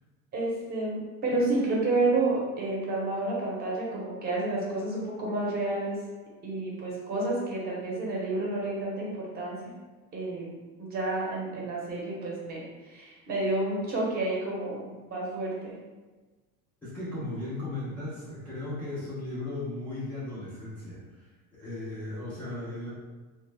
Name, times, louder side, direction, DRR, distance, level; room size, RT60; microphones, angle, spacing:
voice 1, 0.3-6.0 6.4-9.6 10.1-10.4 10.8-15.7, right 2 dB, 30° right, -4 dB, 0.7 m, -30 dB
voice 2, 16.8-22.9, left 2 dB, 5° left, -12 dB, 0.4 m, -36 dB
3.0 x 2.1 x 3.2 m, 1.3 s
cardioid pair, 165°, 32 cm